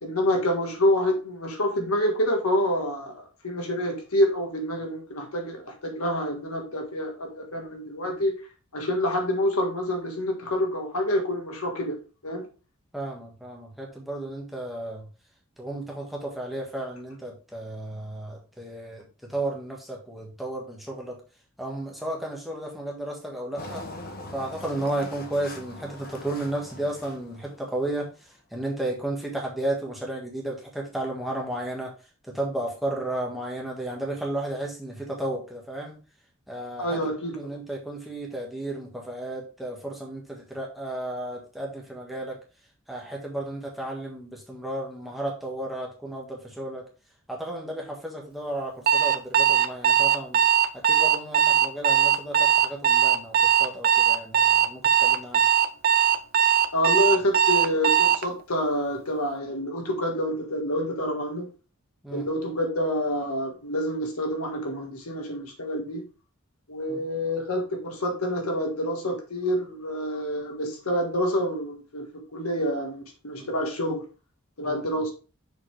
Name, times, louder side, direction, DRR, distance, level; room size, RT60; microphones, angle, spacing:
voice 1, 0.0-8.3 8.7-12.5 36.8-37.5 56.7-61.5 62.1-66.0 66.7-74.0 74.6-75.1, equal, 85° left, 3 dB, 1.7 m, -27 dB
voice 2, 12.9-15.1 15.6-21.2 21.6-23.8 24.3-31.9 32.2-36.0 36.5-42.4 42.9-46.9 47.3-50.4 50.7-55.5 62.0-62.3 66.9-67.0 73.3-73.5 74.6-74.9, right 1 dB, ahead, -2 dB, 1.6 m, -33 dB
Engine, 23.6-28.1, left 2 dB, 45° left, 1.1 m, -42 dB
Alarm, 48.9-58.3, right 9 dB, 45° right, 0.4 m, -20 dB
6.4 x 5.5 x 3.3 m, 0.34 s
head